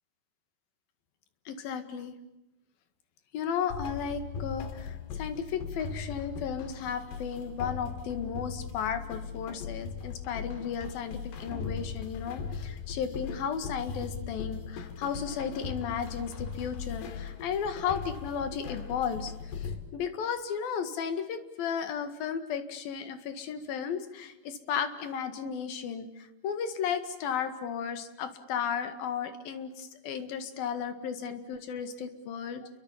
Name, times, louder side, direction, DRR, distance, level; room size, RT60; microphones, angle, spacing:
voice 1, 1.5-2.1 3.3-19.3 19.6-32.7, left 7 dB, 65° left, 9 dB, 3.6 m, -34 dB
sound 1, 3.7-19.8, left 6 dB, 90° left, 4.5 m, -39 dB
29.5 x 23.5 x 7.3 m, 0.95 s
omnidirectional pair, 4.6 m